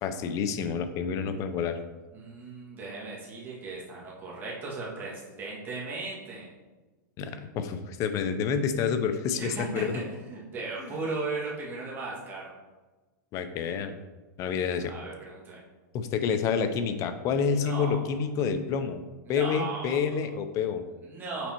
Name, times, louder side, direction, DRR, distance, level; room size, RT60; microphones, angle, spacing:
voice 1, 0.0-1.8 7.2-9.9 13.3-14.0 14.4-14.9 15.9-19.0 19.3-20.8, left 6 dB, 30° left, 9 dB, 0.6 m, -28 dB
voice 2, 2.1-6.5 9.4-12.5 14.4-15.6 17.6-18.1 19.2-20.0 21.0-21.5, right 3 dB, 20° right, -5 dB, 1.9 m, -37 dB
6.0 x 4.1 x 4.4 m, 1.2 s
supercardioid pair, 145°, 10 cm